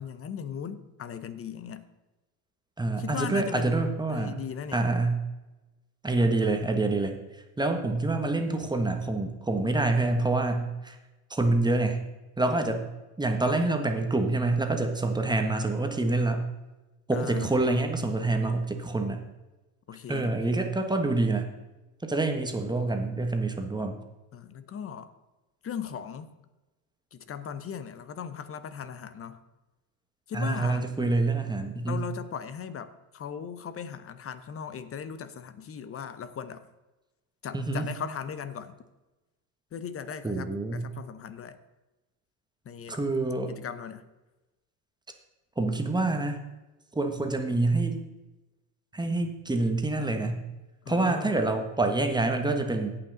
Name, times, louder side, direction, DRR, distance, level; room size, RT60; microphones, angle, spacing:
voice 1, 0.0-1.9 3.0-3.8 4.1-4.8 17.1-17.6 19.9-20.6 24.3-25.1 25.6-26.3 27.1-29.4 30.3-30.9 31.9-36.6 37.4-38.8 39.7-41.6 42.6-43.0 43.5-44.0 50.8-51.3, left 7 dB, 30° left, 13 dB, 0.8 m, -38 dB
voice 2, 2.8-4.3 4.7-5.2 6.0-7.1 7.6-11.0 11.3-12.0 12.4-12.8 13.2-16.4 17.1-19.2 20.1-21.5 22.0-24.0 30.3-32.0 37.5-37.8 40.2-40.8 42.9-43.5 45.6-46.4 46.9-48.0 48.9-50.4 50.9-53.0, right 2 dB, 10° right, 5 dB, 1.3 m, -26 dB
17.0 x 5.8 x 3.9 m, 1.1 s
supercardioid pair, 100°, 45 cm